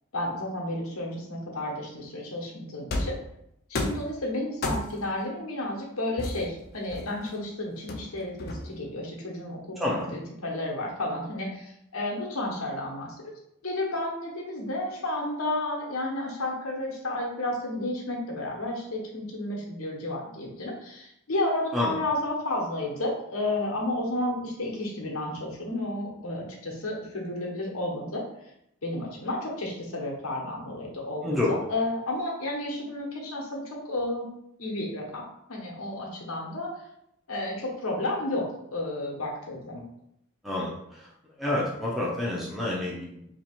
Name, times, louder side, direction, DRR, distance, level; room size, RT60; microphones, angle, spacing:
voice 1, 0.1-3.2 3.7-13.1 13.6-28.2 28.8-34.3 34.6-35.2 35.5-36.7 37.3-39.8, left 1 dB, 90° left, -1 dB, 1.0 m, -32 dB
sound 1, 2.9-3.3 3.7-4.1 4.6-5.1 6.2-7.3 7.9-8.9, left 1 dB, 45° left, 0.5 m, -32 dB
voice 2, 9.8-10.2 21.7-21.9 31.2-31.6 40.4-41.1 41.4-43.3, left 2 dB, ahead, -5 dB, 0.6 m, -28 dB
2.9 x 2.8 x 4.4 m, 0.78 s
head